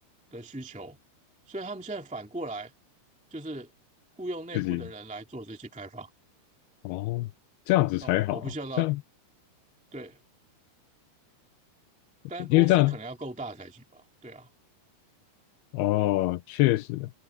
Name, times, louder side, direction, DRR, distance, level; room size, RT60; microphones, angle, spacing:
voice 1, 0.3-1.0 1.5-2.7 3.3-3.7 4.2-6.1 8.0-8.9 9.9-10.2 12.3-14.5, right 2 dB, 5° right, 1.2 m, -38 dB
voice 2, 4.5-4.9 6.8-7.3 7.7-8.5 8.8-9.0 12.4-13.0 15.7-17.1, left 18 dB, 85° left, 2.5 m, -24 dB
omnidirectional pair, 4.7 m